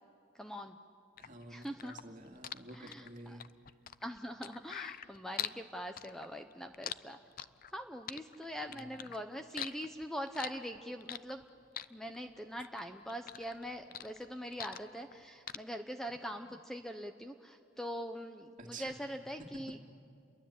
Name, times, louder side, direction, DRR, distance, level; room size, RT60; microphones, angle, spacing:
voice 1, 0.4-0.8 1.5-1.9 2.7-3.4 4.0-7.2 7.7-11.4 11.9-19.8, equal, ahead, 6 dB, 0.8 m, -43 dB
sound 1, 1.2-5.6 6.0-7.8 8.1-9.2 9.5-11.4 11.7-12.8 13.1-15.2 15.5-15.6, left 10 dB, 45° left, 0.6 m, -42 dB
voice 2, 1.2-3.4 8.6-9.1 18.6-19.1 19.4-19.8, right 2 dB, 40° right, 3 dB, 2.5 m, -50 dB
30.0 x 22.5 x 8.8 m, 2.4 s
head